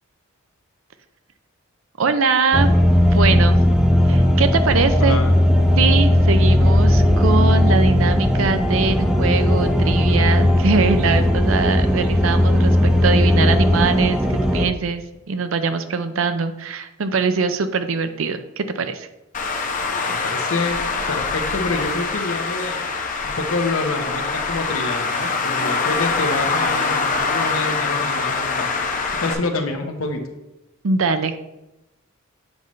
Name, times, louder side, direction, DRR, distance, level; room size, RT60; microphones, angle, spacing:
voice 1, 2.0-2.7 3.0-3.6 4.1-5.3 5.8-19.1 30.8-31.4, right 4 dB, 70° right, 10 dB, 0.6 m, -22 dB
sound 1, 2.5-14.7, left 1 dB, 5° right, 0.5 m, -16 dB
voice 2, 5.0-5.3 20.0-20.8 21.1-22.9 23.2-28.8 29.1-30.2, left 3 dB, 80° left, 4 dB, 1.0 m, -27 dB
Traffic noise roadway noise, 19.3-29.3, left 4 dB, 40° left, 0.6 m, -24 dB
7.8 x 3.2 x 5.3 m, 0.94 s
head